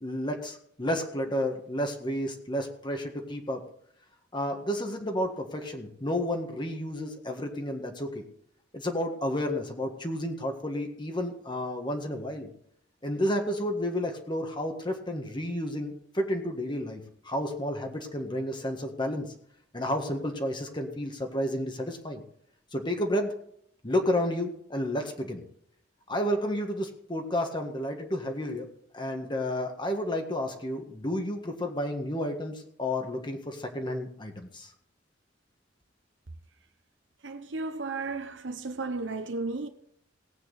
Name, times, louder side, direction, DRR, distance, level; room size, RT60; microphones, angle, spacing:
voice 1, 0.0-3.6 4.3-8.2 8.7-12.5 13.0-19.3 19.7-22.2 22.7-23.3 23.8-25.4 26.1-28.7 28.9-34.7, left 1 dB, 25° left, 1.6 m, -31 dB
voice 2, 37.2-39.7, right 3 dB, 85° right, 1.0 m, -34 dB
18.0 x 8.6 x 4.1 m
head